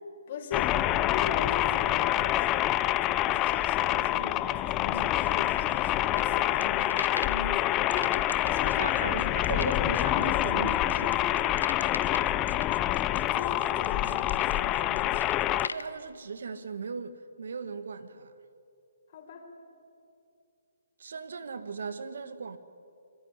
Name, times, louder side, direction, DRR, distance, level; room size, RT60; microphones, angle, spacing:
voice 1, 0.3-0.8 1.1-8.1 8.4-9.2 13.1-15.3 19.1-19.5, left 5 dB, 45° left, 4.9 m, -40 dB
sound 1, 0.5-15.7, left 14 dB, 20° left, 0.6 m, -27 dB
sound 2, 5.2-7.4 7.9-15.9, left 4 dB, 85° left, 1.3 m, -40 dB
voice 2, 8.6-11.2 15.7-18.3 21.0-22.6, right 5 dB, 70° right, 1.8 m, -37 dB
25.5 x 21.0 x 10.0 m
hypercardioid pair, 150°, 0 cm